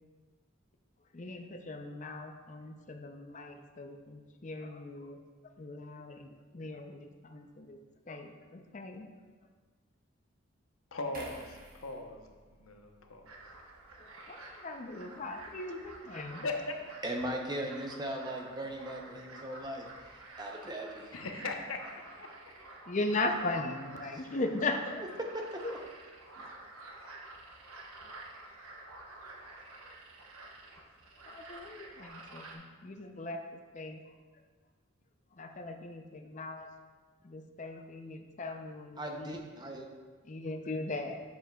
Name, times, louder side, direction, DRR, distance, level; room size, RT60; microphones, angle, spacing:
voice 1, 1.1-5.2 5.6-7.8 8.1-9.1 14.0-16.4 22.9-25.0 25.6-25.8 31.3-34.0 35.3-36.7 37.2-39.4 40.2-41.2, left 2 dB, 35° left, 5 dB, 0.5 m, -38 dB
voice 2, 10.9-13.2 16.4-16.7 21.1-22.3 26.4-26.6, left 2 dB, 80° left, 3 dB, 0.8 m, -39 dB
sound 1, 11.1-14.5 14.9-15.0, right 2 dB, 40° right, 1.1 m, -53 dB
sound 2, 13.2-32.5, right 2 dB, 90° right, 1.0 m, -50 dB
voice 3, 17.0-21.1 39.0-39.9, right 1 dB, 20° right, 1 dB, 0.6 m, -38 dB
8.9 x 7.1 x 2.3 m, 1.4 s
head